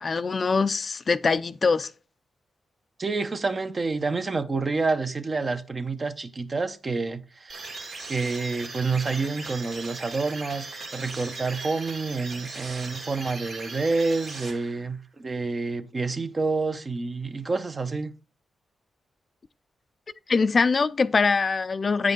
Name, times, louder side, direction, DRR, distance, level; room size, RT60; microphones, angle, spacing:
voice 1, 0.0-1.9 20.3-22.1, left 4 dB, 45° left, 0.4 m, -23 dB
voice 2, 3.0-7.6 8.1-10.7 10.9-18.1, right 3 dB, 40° right, 0.9 m, -28 dB
sound 1, 7.5-15.0, right 3 dB, 75° right, 2.3 m, -39 dB
8.4 x 5.1 x 3.8 m
cardioid pair, 60°, 0 cm